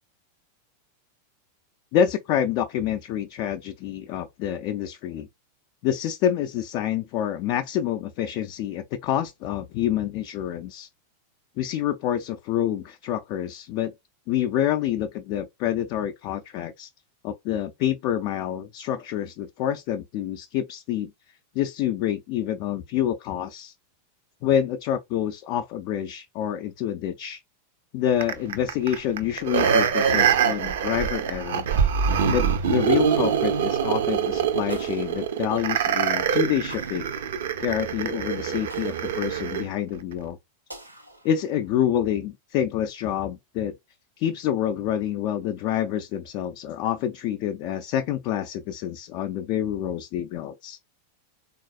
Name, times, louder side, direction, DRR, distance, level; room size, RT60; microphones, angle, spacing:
voice 1, 1.9-5.3 5.8-10.9 11.6-13.9 14.3-16.9 17.2-21.1 21.6-23.7 24.4-27.4 27.9-31.7 32.3-37.1 37.6-40.4 41.2-43.7 44.2-50.8, left 10 dB, 45° left, 0.4 m, -27 dB
sound 1, 28.2-39.7 40.1-40.2, right 7 dB, 60° right, 0.5 m, -24 dB
sound 2, 34.7-36.0 36.7-37.9 38.7-39.9 40.7-41.9, right 1 dB, 85° right, 0.9 m, -47 dB
3.8 x 2.4 x 2.4 m
figure-of-eight pair, 90°, 0 cm